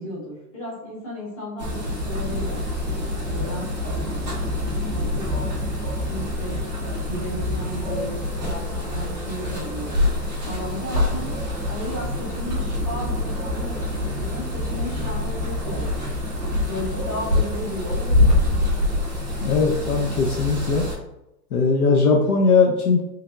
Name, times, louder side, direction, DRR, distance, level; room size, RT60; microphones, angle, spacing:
voice 1, 0.0-11.3 11.7-16.3 16.6-18.7, equal, 20° left, -8 dB, 1.0 m, -35 dB
sound 1, 1.6-21.0, left 2 dB, 30° right, 0.5 m, -25 dB
voice 2, 19.4-20.8 21.5-23.0, left 4 dB, 60° left, 0 dB, 0.6 m, -19 dB
3.3 x 3.3 x 2.3 m, 0.88 s
hypercardioid pair, 175°, 50 cm